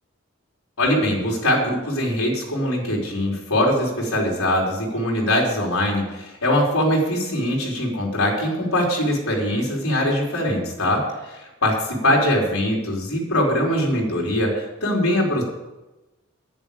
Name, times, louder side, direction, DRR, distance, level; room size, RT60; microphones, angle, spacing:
voice 1, 0.8-15.4, left 1 dB, 90° left, -2 dB, 4.4 m, -22 dB
10.5 x 10.5 x 7.1 m, 1.0 s
head